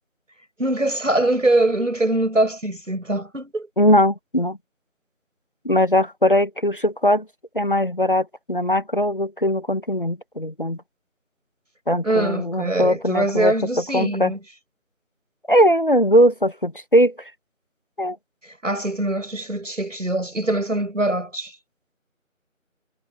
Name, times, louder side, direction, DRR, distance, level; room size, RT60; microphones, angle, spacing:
voice 1, 0.6-3.7 12.0-14.4 18.4-21.5, right 1 dB, 65° right, 6.8 m, -23 dB
voice 2, 3.8-4.6 5.6-7.2 7.5-10.8 11.9-13.5 13.9-14.3 15.5-17.3 18.0-18.2, equal, 40° left, 1.4 m, -20 dB
figure-of-eight pair, 175°, 41 cm